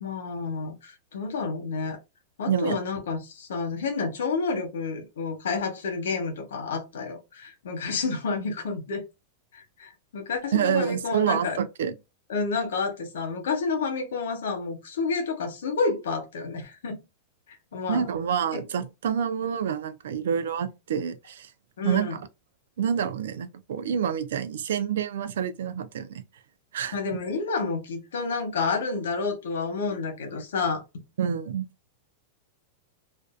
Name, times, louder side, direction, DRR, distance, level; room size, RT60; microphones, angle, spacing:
voice 1, 0.0-2.0 2.4-9.0 9.5-11.6 12.3-17.0 17.7-18.1 18.5-18.6 21.8-22.2 26.9-30.8, left 4 dB, 85° left, 0.9 m, -30 dB
voice 2, 10.5-11.9 17.9-21.5 21.8-22.1 22.8-26.2 26.7-27.0 31.2-31.7, right 8 dB, 85° right, 0.4 m, -27 dB
2.5 x 2.2 x 2.4 m
supercardioid pair, 135°, 0 cm